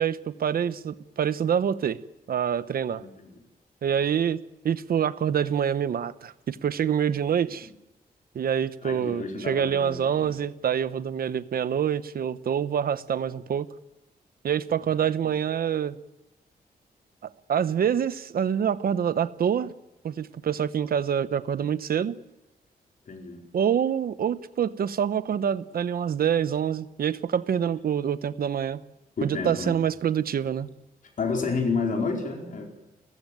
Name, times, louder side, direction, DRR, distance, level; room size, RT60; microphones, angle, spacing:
voice 1, 0.0-2.0 2.3-3.0 3.8-7.7 8.3-13.7 14.4-16.0 17.5-19.7 20.0-22.2 23.5-28.8 29.2-30.7, right 8 dB, 70° right, 14 dB, 1.0 m, -26 dB
voice 2, 2.9-3.3 7.6-7.7 8.8-10.3 23.1-23.4 29.2-29.8 31.2-32.7, left 4 dB, 55° left, 2 dB, 4.8 m, -30 dB
29.5 x 15.0 x 9.3 m, 1.0 s
wide cardioid pair, 115°, 16 cm